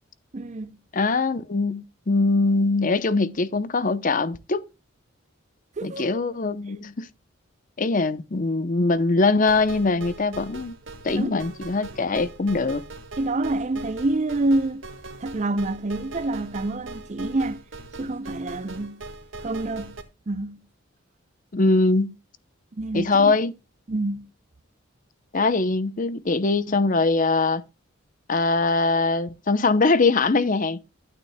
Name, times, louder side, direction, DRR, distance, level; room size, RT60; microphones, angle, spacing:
voice 1, 0.3-0.8 5.8-6.2 11.1-11.3 13.2-14.8 15.2-17.6 18.0-19.0 19.4-20.0 20.3-20.6 22.7-23.3 23.9-24.3, right 2 dB, 35° right, 0.5 m, -27 dB
voice 2, 0.9-4.6 5.8-7.1 7.8-10.7 11.0-12.8 21.5-22.1 22.9-23.5 25.3-27.6 28.3-30.8, left 3 dB, 40° left, 0.7 m, -22 dB
sound 1, 9.5-20.0, right 3 dB, 70° right, 1.8 m, -41 dB
12.5 x 9.0 x 2.2 m
head